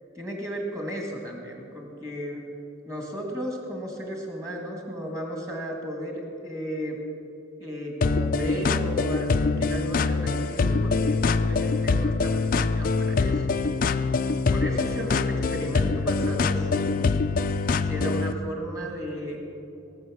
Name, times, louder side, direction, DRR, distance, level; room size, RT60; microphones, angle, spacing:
voice 1, 0.2-2.4 2.9-7.0 7.6-9.3 9.6-13.4 14.5-17.2 17.8-19.4, equal, 15° right, 1 dB, 1.8 m, -34 dB
sound 1, 8.0-18.3, left 4 dB, 45° left, 0.4 m, -24 dB
18.5 x 6.6 x 6.2 m, 2.7 s
head